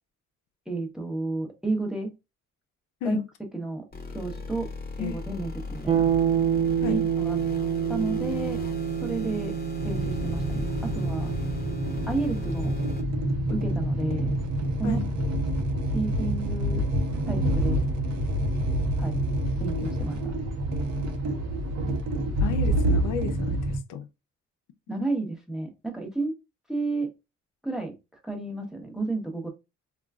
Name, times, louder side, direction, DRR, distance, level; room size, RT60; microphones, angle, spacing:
voice 1, 0.7-2.1 3.0-3.2 3.5-3.8 4.1-4.7 5.0-6.0 6.8-7.4 7.9-8.6 9.0-9.6 9.8-11.3 12.1-12.8 13.5-14.3 14.8-15.0 15.9-16.8 17.3-17.8 19.0-19.2 19.6-20.3 24.9-26.3 26.7-27.1 27.6-27.9 28.2-29.5, right 3 dB, ahead, 0.9 m, -31 dB
sound 1, 3.9-13.0, left 3 dB, 30° left, 0.9 m, -38 dB
sound 2, 5.9-15.6, right 9 dB, 20° right, 0.4 m, -29 dB
sound 3, 9.8-23.8, right 1 dB, 60° right, 0.7 m, -27 dB
voice 2, 22.4-24.1, left 8 dB, 85° left, 0.5 m, -33 dB
3.6 x 2.3 x 2.3 m
cardioid pair, 90°, 30 cm